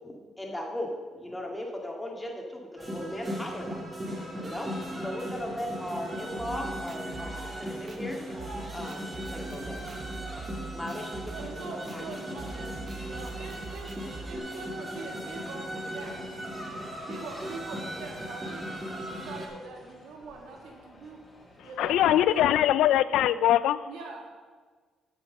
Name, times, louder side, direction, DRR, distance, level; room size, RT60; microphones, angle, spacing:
voice 1, 0.0-3.8 4.4-4.7 5.0-8.2 8.7-9.8 10.7-11.1 11.5-12.1, left 1 dB, 5° left, 1.9 m, -37 dB
sound 1, 2.8-19.5, equal, 25° right, 2.2 m, -38 dB
sound 2, 4.1-21.8, left 1 dB, 30° left, 2.1 m, -53 dB
sound 3, 6.4-14.4, right 4 dB, 45° right, 0.8 m, -43 dB
voice 2, 11.3-16.2 17.0-21.2 21.6-22.7 23.9-24.3, right 3 dB, 90° right, 1.6 m, -43 dB
voice 3, 21.8-23.8, left 12 dB, 85° left, 0.3 m, -22 dB
7.9 x 6.3 x 6.5 m
cardioid pair, 90°, 0 cm